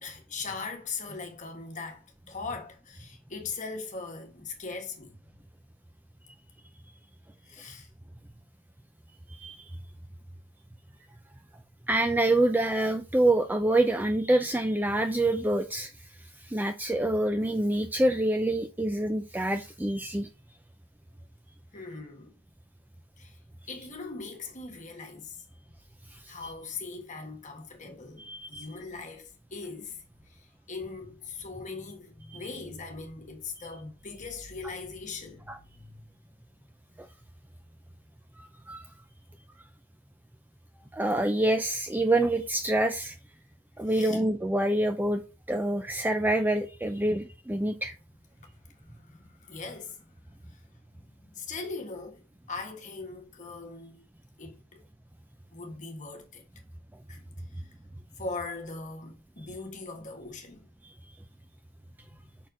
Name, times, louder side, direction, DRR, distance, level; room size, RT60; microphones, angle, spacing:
voice 1, 0.0-5.2 7.5-7.9 21.7-22.3 23.2-23.4 23.7-25.4 26.3-36.0 43.9-44.2 48.4-50.6 50.9-52.2 52.5-54.0 54.4-54.8 55.5-56.4 57.1-57.2 57.5-57.7 58.2-60.7 62.0-62.2, left 4 dB, 35° left, 1.5 m, -40 dB
voice 2, 11.9-15.9 16.5-20.3 28.2-28.7 35.5-35.6 37.0-37.1 38.7-38.8 40.9-43.1 43.8-45.2 45.5-47.9, right 1 dB, 10° right, 0.5 m, -26 dB
5.9 x 4.4 x 5.0 m
head